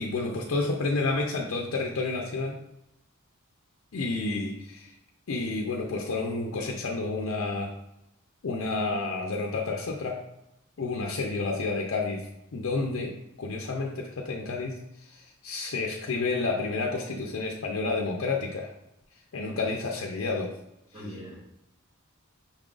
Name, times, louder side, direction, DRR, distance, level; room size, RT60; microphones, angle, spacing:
voice 1, 0.0-2.6 3.9-4.9 5.3-7.7 8.4-10.2 10.8-18.7 19.3-20.6, left 3 dB, 70° left, 0 dB, 0.5 m, -30 dB
voice 2, 19.5-19.8 20.9-21.3, equal, 25° right, -8 dB, 1.7 m, -42 dB
5.4 x 3.7 x 2.4 m, 0.85 s
head